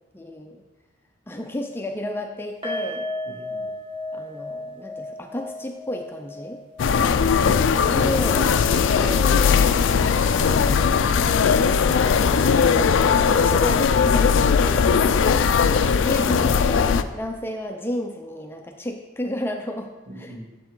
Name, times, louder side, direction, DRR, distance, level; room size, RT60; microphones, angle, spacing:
voice 1, 0.1-0.6 1.3-3.1 4.1-6.6 7.9-8.5 9.0-9.6 12.1-14.9 16.0-20.4, left 1 dB, 10° left, 3 dB, 0.4 m, -32 dB
sound 1, 2.6-9.8 10.1-10.3 10.7-10.8, left 1 dB, 25° right, 1.5 m, -36 dB
voice 2, 3.3-3.7 15.2-15.6 20.1-20.4, equal, 65° right, -5 dB, 2.6 m, -42 dB
sound 2, 6.8-17.0, left 6 dB, 70° left, 0.4 m, -19 dB
7.5 x 7.2 x 3.7 m, 1.2 s
head